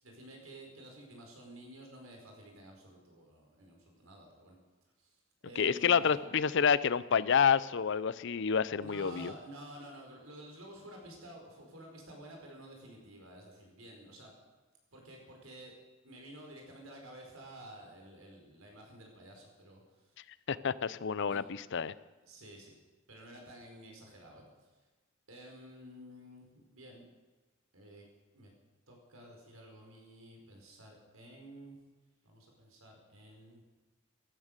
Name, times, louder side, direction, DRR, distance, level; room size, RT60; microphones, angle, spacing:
voice 1, 0.0-4.6 5.0-6.2 8.8-14.3 14.9-15.7 16.0-20.2 21.2-21.4 22.2-22.8 23.1-24.7 25.3-27.0 27.7-28.0 28.3-28.5 28.9-31.8 32.2-33.6, right 1 dB, 90° right, 1 dB, 4.8 m, -52 dB
voice 2, 5.6-9.3 20.5-21.9, left 6 dB, 60° left, 18 dB, 0.6 m, -28 dB
15.0 x 13.5 x 6.6 m, 1.2 s
head